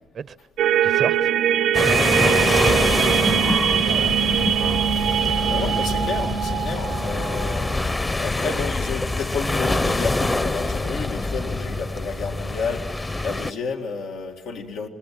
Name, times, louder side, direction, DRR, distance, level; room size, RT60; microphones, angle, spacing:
sound 1, 0.6-7.9, right 10 dB, 85° right, 0.7 m, -22 dB
voice 1, 0.8-1.3 2.6-4.3 4.6-5.0, right 7 dB, 50° right, 0.6 m, -33 dB
sound 2, 1.7-13.5, left 2 dB, 20° left, 0.8 m, -26 dB
sound 3, 3.0-11.6, left 4 dB, 45° left, 1.6 m, -31 dB
voice 2, 4.9-14.9, left 5 dB, 90° left, 2.0 m, -31 dB
27.0 x 20.0 x 7.6 m
cardioid pair, 90°, 0 cm